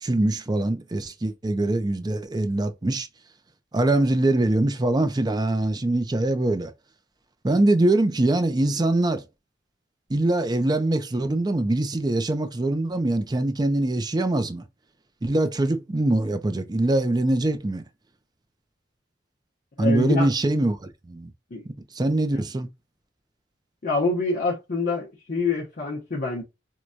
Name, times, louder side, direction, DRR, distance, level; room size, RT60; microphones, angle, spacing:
voice 1, 0.0-3.1 3.7-6.7 7.4-9.2 10.1-14.6 15.2-17.8 19.8-21.3 21.9-22.7, right 2 dB, 20° right, 0.4 m, -23 dB
voice 2, 19.8-20.3 21.5-21.6 23.8-26.4, left 3 dB, 50° left, 0.7 m, -26 dB
4.5 x 2.2 x 2.5 m
head